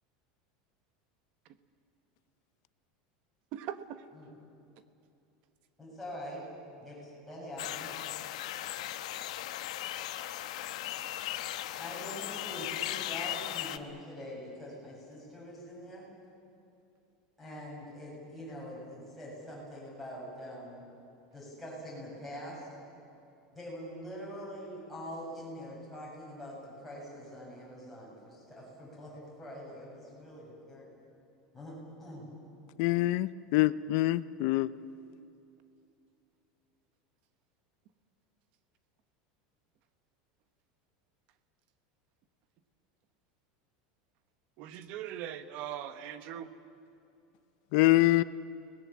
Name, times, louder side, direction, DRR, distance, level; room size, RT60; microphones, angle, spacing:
voice 1, 3.5-4.0 44.6-46.5, right 10 dB, 40° right, 10 dB, 1.2 m, -40 dB
voice 2, 5.8-6.4 6.8-8.0 11.8-16.1 17.4-20.8 21.3-22.7 23.5-30.9 31.5-31.7 32.0-32.3, equal, ahead, -6 dB, 7.9 m, -44 dB
sound 1, 7.6-13.8, left 13 dB, 80° left, 1.1 m, -37 dB
voice 3, 32.8-34.7 47.7-48.2, left 17 dB, 50° left, 16 dB, 0.5 m, -25 dB
30.0 x 20.0 x 7.5 m, 2.7 s
supercardioid pair, 175°, 3 cm